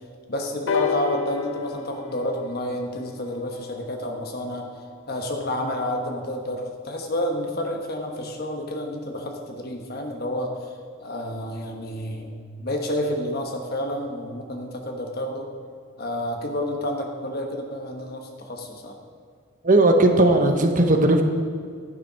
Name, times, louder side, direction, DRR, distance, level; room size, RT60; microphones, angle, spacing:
voice 1, 0.3-4.7 5.1-12.3 12.6-15.5 16.0-19.0, left 1 dB, 45° left, 3 dB, 1.2 m, -30 dB
sound 1, 0.7-4.5 5.4-5.5, left 5 dB, 65° left, 0.7 m, -31 dB
voice 2, 19.6-21.2, right 2 dB, 40° right, 5 dB, 0.9 m, -17 dB
10.5 x 6.9 x 5.7 m, 2.2 s
head